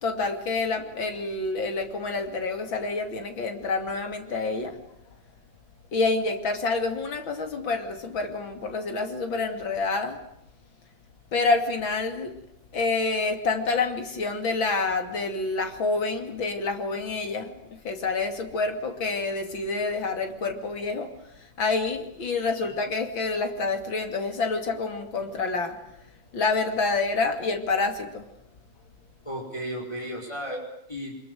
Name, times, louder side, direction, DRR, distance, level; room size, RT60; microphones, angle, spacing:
voice 1, 0.0-5.0 5.9-10.2 11.3-12.4 12.7-28.3, left 3 dB, 90° left, 6 dB, 3.5 m, -28 dB
voice 2, 29.2-31.2, equal, 15° left, -1 dB, 4.9 m, -34 dB
25.5 x 22.0 x 9.4 m, 0.78 s
omnidirectional pair, 2.1 m